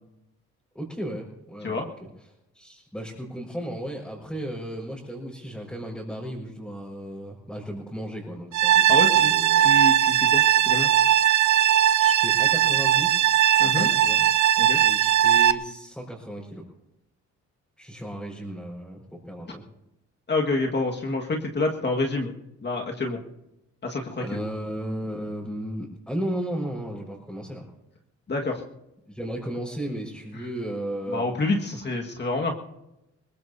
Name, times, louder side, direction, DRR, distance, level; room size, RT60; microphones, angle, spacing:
voice 1, 0.7-2.1 2.5-9.7 11.1-14.3 14.8-16.6 17.8-19.6 24.2-27.6 29.1-31.2, right 1 dB, 5° left, -5 dB, 5.0 m, -35 dB
sound 1, 8.5-15.5, right 11 dB, 75° right, 0.7 m, -19 dB
voice 2, 8.9-9.3 9.6-10.9 13.6-13.9 14.6-14.8 20.3-22.3 22.6-23.2 23.8-24.4 28.3-28.6 31.1-32.5, left 2 dB, 35° left, 1 dB, 1.8 m, -27 dB
22.0 x 20.0 x 2.8 m, 0.89 s
cardioid pair, 90°, 30 cm